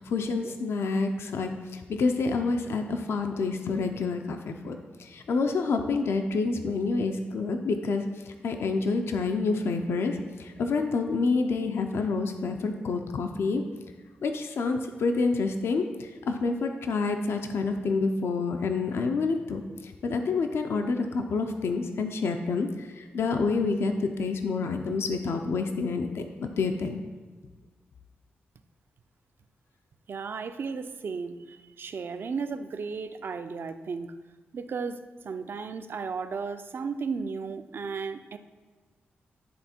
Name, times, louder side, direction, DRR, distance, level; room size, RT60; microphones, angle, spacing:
voice 1, 0.0-13.6 14.2-27.0, left 4 dB, 75° left, 5 dB, 0.5 m, -28 dB
voice 2, 30.1-34.1 34.5-38.4, right 5 dB, 60° right, 10 dB, 0.4 m, -34 dB
10.5 x 3.5 x 4.3 m, 1.3 s
cardioid pair, 70°, 4 cm